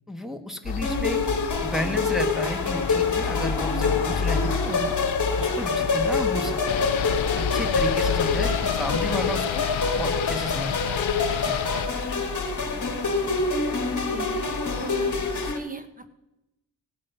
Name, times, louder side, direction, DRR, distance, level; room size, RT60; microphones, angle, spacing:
voice 1, 0.1-1.2 1.6-4.9 5.4-6.8 7.5-9.6 10.0-10.7 11.4-11.5, left 1 dB, ahead, 3 dB, 1.2 m, -32 dB
sound 1, 0.6-15.5, left 5 dB, 60° left, 1.1 m, -32 dB
sound 2, 0.8-15.6, left 4 dB, 40° left, 1.6 m, -26 dB
sound 3, 6.7-11.9, left 10 dB, 80° left, 0.6 m, -31 dB
voice 2, 14.0-16.1, right 3 dB, 20° right, 9 dB, 0.9 m, -39 dB
17.0 x 7.6 x 5.4 m, 0.94 s
wide cardioid pair, 95°, 46 cm